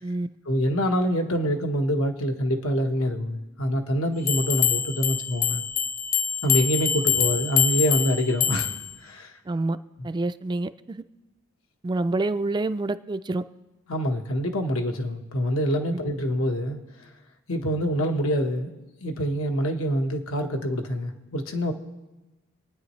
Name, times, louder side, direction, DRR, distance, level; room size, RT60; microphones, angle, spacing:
voice 1, 0.5-5.6 6.4-8.7 9.0-9.3 13.9-16.8 17.5-18.7 19.0-21.7, equal, 90° left, 1.3 m, -25 dB
sound 1, 4.3-8.9, left 8 dB, 40° left, 0.7 m, -25 dB
voice 2, 9.5-9.8 10.0-11.0 11.8-13.4 15.9-16.0, right 2 dB, 20° right, 0.3 m, -27 dB
26.5 x 9.6 x 3.2 m
head